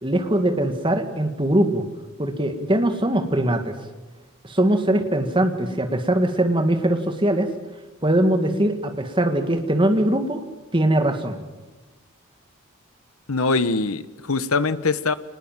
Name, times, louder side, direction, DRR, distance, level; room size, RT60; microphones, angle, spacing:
voice 1, 0.0-1.8 2.2-3.7 4.4-7.5 8.0-10.4 10.7-11.4, right 1 dB, 20° right, 6 dB, 2.0 m, -21 dB
voice 2, 13.3-15.1, left 3 dB, 75° left, 13 dB, 1.2 m, -22 dB
25.5 x 20.5 x 7.5 m, 1.2 s
head